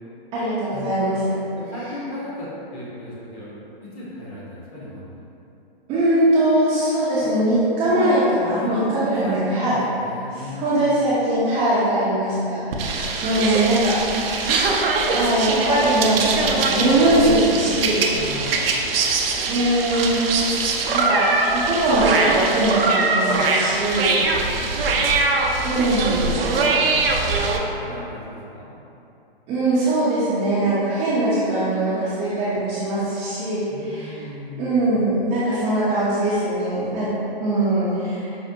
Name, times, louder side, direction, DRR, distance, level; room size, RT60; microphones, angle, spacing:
voice 1, 0.3-1.4 5.9-9.8 10.3-14.5 15.1-18.1 19.5-20.3 20.9-24.2 25.6-26.1 29.5-34.2 34.6-37.1 37.4-38.4, right 1 dB, 20° right, -11 dB, 0.6 m, -21 dB
voice 2, 1.3-3.5 3.8-5.3 8.5-10.9 18.1-18.7 24.1-25.2 25.9-26.9 27.2-28.7 33.7-34.8, equal, 30° left, -8 dB, 1.0 m, -35 dB
sound 1, 12.7-27.6, right 3 dB, 70° right, 0.5 m, -22 dB
5.2 x 2.1 x 2.7 m, 2.8 s
hypercardioid pair, 135°, 30 cm